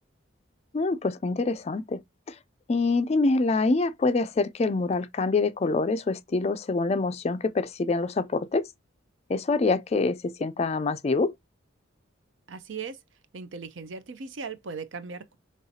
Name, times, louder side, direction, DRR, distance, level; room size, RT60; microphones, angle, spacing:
voice 1, 0.7-2.0 2.3-2.4 2.7-8.7 9.3-11.3, left 3 dB, 30° left, 0.3 m, -25 dB
voice 2, 12.5-13.0 13.3-15.4, right 5 dB, 70° right, 0.6 m, -38 dB
5.5 x 3.1 x 2.7 m
head